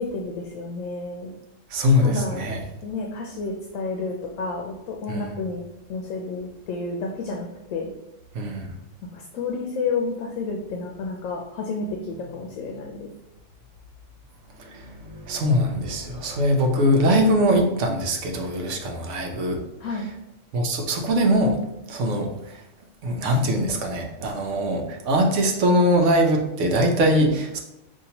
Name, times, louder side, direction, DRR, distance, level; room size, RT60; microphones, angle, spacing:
voice 1, 0.0-1.3 2.0-2.6 2.8-5.6 5.9-7.9 9.1-13.1 19.8-20.1, left 3 dB, 80° left, 1 dB, 1.0 m, -30 dB
voice 2, 1.7-2.6 5.1-5.3 8.3-8.7 14.6-19.6 20.5-21.6 21.9-22.6 23.0-27.6, equal, 70° right, 3 dB, 1.0 m, -22 dB
5.3 x 2.8 x 2.9 m, 0.89 s
omnidirectional pair, 1.3 m